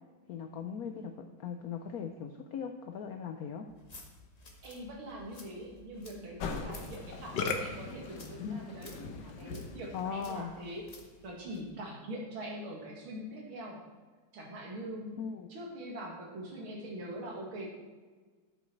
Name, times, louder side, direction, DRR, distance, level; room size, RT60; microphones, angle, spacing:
voice 1, 0.3-3.7 8.4-8.6 9.9-10.5 15.2-15.5, left 6 dB, 80° left, 6 dB, 0.8 m, -39 dB
sound 1, 3.7-11.7, left 1 dB, 25° left, 1.0 m, -55 dB
voice 2, 4.6-10.8 11.2-13.8 14.3-15.2 15.5-17.7, right 1 dB, 80° right, -1 dB, 2.8 m, -43 dB
Musical instrument, 6.4-10.7, left 4 dB, 65° left, 1.4 m, -39 dB
11.5 x 7.0 x 4.5 m, 1.4 s
omnidirectional pair, 2.3 m